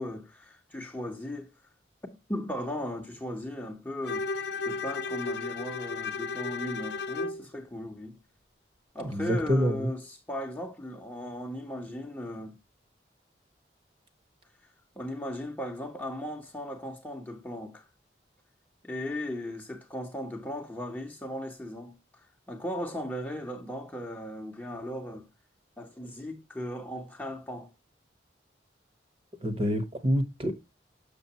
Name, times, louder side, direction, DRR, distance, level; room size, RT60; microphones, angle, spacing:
voice 1, 0.0-1.5 2.1-4.3 4.6-8.2 8.9-12.6 15.0-17.9 18.8-22.0 22.5-25.3 25.8-27.7, left 1 dB, 10° left, 0.9 m, -37 dB
Bowed string instrument, 4.0-7.4, left 4 dB, 70° left, 0.6 m, -34 dB
voice 2, 9.0-9.9 29.4-30.5, equal, 30° right, 1.0 m, -27 dB
6.9 x 6.4 x 2.8 m
head